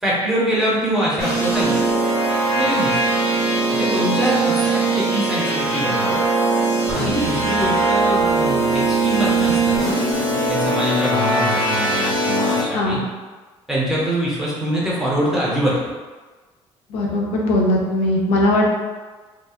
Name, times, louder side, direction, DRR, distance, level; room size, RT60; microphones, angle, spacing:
voice 1, 0.0-1.8 2.5-3.1 3.7-6.2 6.9-10.0 10.5-13.0 13.7-15.8, equal, 5° right, -6 dB, 0.6 m, -24 dB
sound 1, 1.2-12.6, right 2 dB, 30° left, 1.0 m, -20 dB
voice 2, 16.9-18.8, left 1 dB, 75° left, -1 dB, 0.5 m, -19 dB
2.8 x 2.3 x 2.3 m, 1.3 s
cardioid pair, 155°, 11 cm